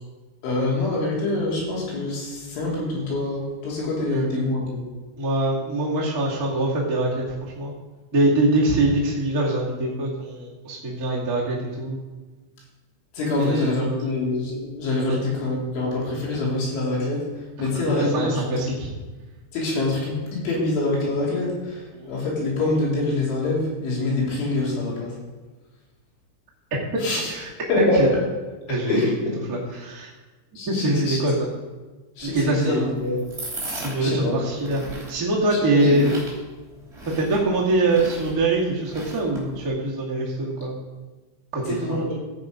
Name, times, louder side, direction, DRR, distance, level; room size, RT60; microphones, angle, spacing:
voice 1, 0.4-4.8 13.1-17.3 17.6-18.6 19.5-25.1 27.0-27.3 27.7-28.2 28.9-29.4 30.6-31.2 32.2-33.2 34.0-34.4 35.5-36.1 41.7-42.1, left 2 dB, 75° left, -5 dB, 5.5 m, -25 dB
voice 2, 5.2-7.7 8.1-12.0 13.3-13.8 15.1-15.2 17.6-18.9 21.9-22.1 26.9-27.5 27.8-28.1 28.7-29.1 29.5-30.1 30.6-31.5 32.2-32.8 33.7-36.4 37.1-40.8 41.5-42.0, right 2 dB, 35° right, -5 dB, 1.4 m, -24 dB
sound 1, 32.2-39.7, right 1 dB, 15° right, 2.7 m, -38 dB
13.5 x 8.2 x 5.1 m, 1.2 s
omnidirectional pair, 5.4 m